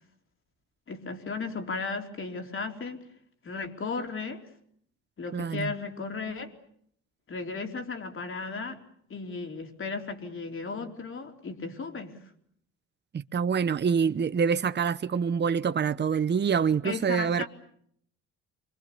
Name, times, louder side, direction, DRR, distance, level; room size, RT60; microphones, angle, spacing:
voice 1, 0.9-3.0 3.4-4.4 5.2-6.5 7.3-8.8 9.1-12.1 16.8-17.5, left 4 dB, 45° left, 3.7 m, -35 dB
voice 2, 5.3-5.7 13.1-17.4, right 6 dB, 35° right, 1.0 m, -26 dB
29.0 x 24.5 x 6.9 m
cardioid pair, 90°, 30 cm